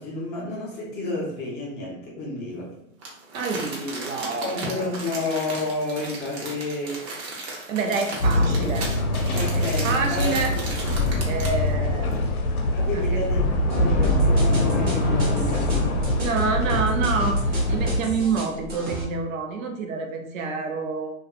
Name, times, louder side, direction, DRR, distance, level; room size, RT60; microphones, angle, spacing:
voice 1, 0.0-2.7 4.4-7.0 9.3-10.7 11.1-11.3 12.7-15.9, left 2 dB, 25° left, -4 dB, 0.8 m, -31 dB
Crumpling crinkling, 3.0-11.7 12.1-12.2, right 2 dB, 50° right, 1.0 m, -35 dB
voice 2, 3.3-4.9 7.7-8.9 9.6-10.5 11.3-12.2 12.9-13.2 16.2-17.4 17.7-21.1, right 4 dB, 70° right, 3 dB, 0.7 m, -28 dB
sound 1, 8.2-18.0, left 1 dB, 85° left, 0.7 m, -23 dB
sound 2, 13.7-19.0, right 2 dB, 20° right, 0.8 m, -33 dB
2.5 x 2.3 x 2.4 m, 0.79 s
hypercardioid pair, 125°, 42 cm